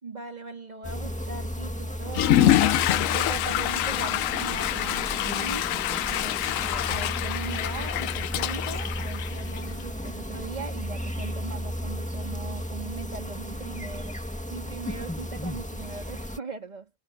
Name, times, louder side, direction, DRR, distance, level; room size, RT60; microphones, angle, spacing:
voice 1, 0.0-2.8 3.1-5.7 6.1-14.2 14.5-16.9, right 4 dB, 30° right, 2.4 m, -39 dB
sound 1, 0.8-16.4, equal, 5° left, 1.7 m, -34 dB
Water / Toilet flush, 2.1-9.8, left 12 dB, 80° left, 1.0 m, -26 dB
omnidirectional pair, 1.4 m